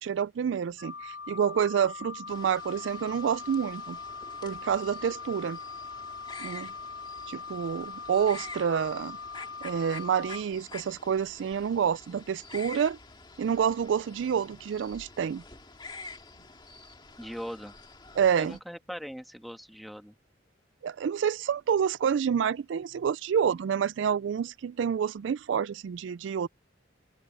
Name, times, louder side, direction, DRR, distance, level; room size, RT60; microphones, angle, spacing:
voice 1, 0.0-4.0 4.4-5.6 6.4-6.7 7.3-9.2 9.6-13.0 13.4-15.4 18.2-18.6 20.8-26.5, right 7 dB, 75° right, 0.3 m, -28 dB
Wind instrument woodwind instrument, 0.8-10.4, left 4 dB, 90° left, 5.3 m, -41 dB
sound 1, 2.3-18.6, left 3 dB, 25° left, 2.0 m, -48 dB
voice 2, 17.2-17.8 18.4-20.1, equal, ahead, 1.5 m, -40 dB
open air
head